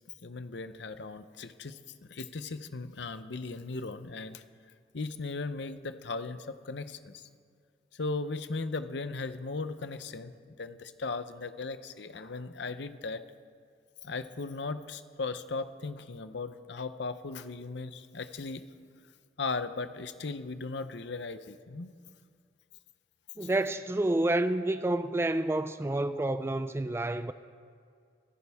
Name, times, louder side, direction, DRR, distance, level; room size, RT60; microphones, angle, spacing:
voice 1, 0.2-1.8 2.1-4.4 4.9-7.3 8.0-13.2 14.0-18.6 19.4-21.9 23.4-23.5, left 3 dB, 65° left, 0.7 m, -37 dB
voice 2, 23.4-27.3, right 1 dB, 15° right, 0.3 m, -29 dB
23.0 x 15.5 x 3.5 m
head